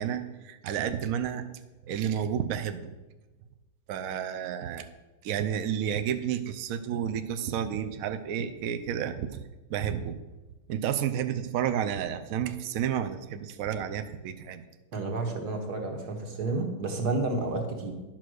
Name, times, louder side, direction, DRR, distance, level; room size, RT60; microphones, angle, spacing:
voice 1, 0.0-1.5 1.9-2.9 3.9-4.9 5.2-9.4 9.7-10.2 10.7-14.6, right 9 dB, 90° right, 8 dB, 0.7 m, -31 dB
voice 2, 14.9-17.9, right 3 dB, 50° right, 3 dB, 1.8 m, -30 dB
11.0 x 5.9 x 6.3 m, 1.1 s
omnidirectional pair, 2.3 m